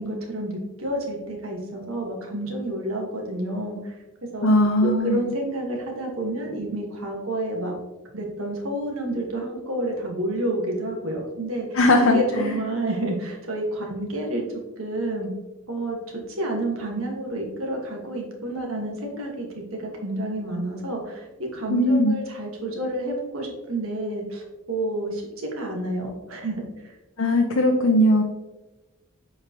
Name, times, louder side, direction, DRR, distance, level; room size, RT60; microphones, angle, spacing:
voice 1, 0.0-3.9 4.3-4.5 4.8-7.7 8.1-15.3 15.7-25.2 25.5-26.9, right 1 dB, 70° right, 0 dB, 1.6 m, -29 dB
voice 2, 4.4-5.3 11.7-12.5 21.7-22.2 27.2-28.2, left 1 dB, 65° left, 2 dB, 0.6 m, -19 dB
7.7 x 4.7 x 3.0 m, 1.1 s
head